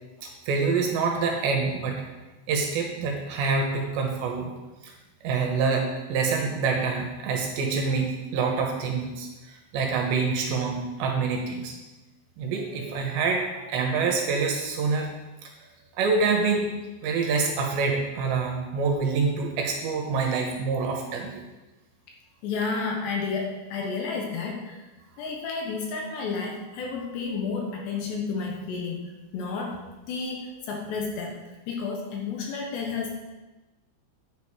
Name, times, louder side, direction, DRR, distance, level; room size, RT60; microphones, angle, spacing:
voice 1, 0.2-2.0 2.5-4.5 4.8-5.0 5.2-11.8 12.4-15.1 15.4-15.5 16.0-16.7 17.0-21.4, right 4 dB, 70° right, 1 dB, 3.2 m, -26 dB
voice 2, 22.4-24.9 25.2-29.0 29.3-29.8 30.1-31.4 31.7-33.2, left 4 dB, 70° left, 1 dB, 3.0 m, -31 dB
10.5 x 9.2 x 4.9 m, 1.1 s
omnidirectional pair, 5.8 m